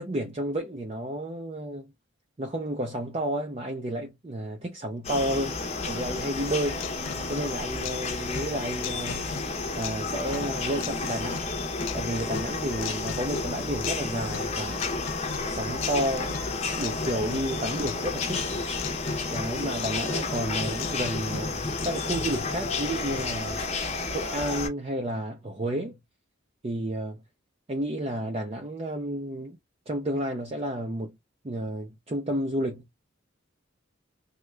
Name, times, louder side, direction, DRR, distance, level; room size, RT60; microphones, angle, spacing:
voice 1, 0.0-1.9 2.4-6.8 7.3-9.3 9.8-11.5 11.9-14.9 15.4-16.3 16.8-18.4 19.3-23.6 24.1-26.0 26.6-27.2 27.7-29.6 29.9-31.2 31.4-33.0, right 1 dB, 30° right, 0.5 m, -31 dB
sound 1, 5.0-24.7, left 3 dB, 35° left, 0.7 m, -31 dB
sound 2, 6.4-22.4, left 9 dB, 65° left, 0.3 m, -41 dB
3.3 x 2.3 x 3.2 m
head